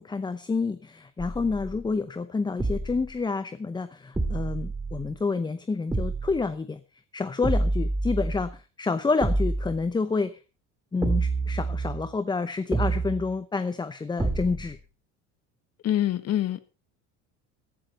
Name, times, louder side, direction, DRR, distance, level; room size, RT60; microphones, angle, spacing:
voice 1, 0.0-6.8 7.1-10.4 10.9-14.8, left 4 dB, 15° left, 13 dB, 0.7 m, -29 dB
sound 1, 1.2-2.0 2.6-3.2 4.1-5.2 5.9-6.5 7.4-8.5 9.2-9.8 11.0-12.1 12.7-13.3 14.2-14.8, right 2 dB, 10° right, 2.0 m, -28 dB
voice 2, 15.8-16.6, left 12 dB, 50° left, 13 dB, 1.5 m, -25 dB
15.0 x 11.5 x 4.2 m, 0.32 s
cardioid pair, 115°, 33 cm